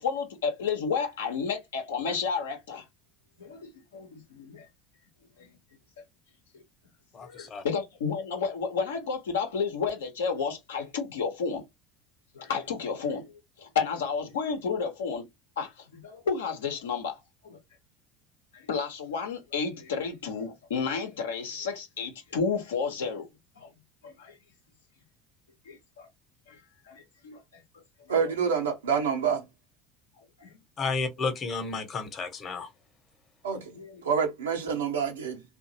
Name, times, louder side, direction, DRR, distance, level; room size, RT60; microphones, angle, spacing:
voice 1, 0.0-2.9 3.4-4.7 5.4-5.6 6.5-6.6 7.2-11.6 12.3-15.3 15.6-17.6 18.5-23.3 23.6-23.7 24.0-24.4 25.7-26.1 26.5-26.6 26.9-27.6 28.1-28.2 30.4-30.5 33.7-34.0, left 5 dB, 75° left, 0.8 m, -32 dB
voice 2, 7.1-7.6 30.8-32.7, left 4 dB, 40° left, 1.0 m, -32 dB
voice 3, 28.1-29.4 33.4-33.8 34.0-35.4, right 6 dB, 80° right, 0.8 m, -27 dB
2.7 x 2.5 x 2.6 m
figure-of-eight pair, 70°, 0 cm